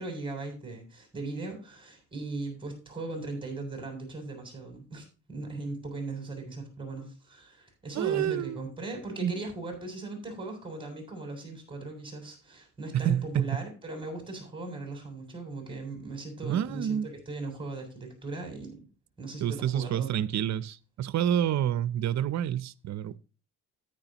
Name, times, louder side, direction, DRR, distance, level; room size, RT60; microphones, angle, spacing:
voice 1, 0.0-18.9 19.2-20.1, right 2 dB, 15° right, 7.3 m, -38 dB
voice 2, 7.9-8.6 9.2-9.3 12.9-13.6 16.4-17.1 19.4-23.2, right 10 dB, 65° right, 0.7 m, -28 dB
13.5 x 10.0 x 3.0 m
cardioid pair, 90°, 30 cm